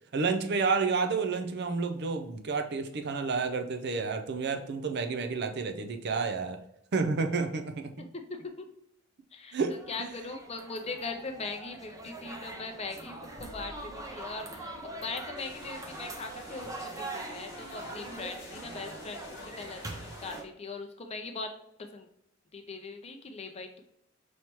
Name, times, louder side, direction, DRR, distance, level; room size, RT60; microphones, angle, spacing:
voice 1, 0.1-6.6 6.9-7.9 9.5-10.1, right 4 dB, 55° right, 6 dB, 0.6 m, -30 dB
voice 2, 8.1-8.7 9.3-19.9 20.2-21.5 21.9-22.1 22.5-23.8, left 3 dB, 30° left, 5 dB, 0.6 m, -40 dB
sound 1, 9.6-20.4, right 2 dB, 15° right, 0.6 m, -43 dB
sound 2, 15.4-20.4, left 2 dB, 55° left, 1.2 m, -48 dB
5.6 x 3.2 x 3.0 m, 0.78 s
head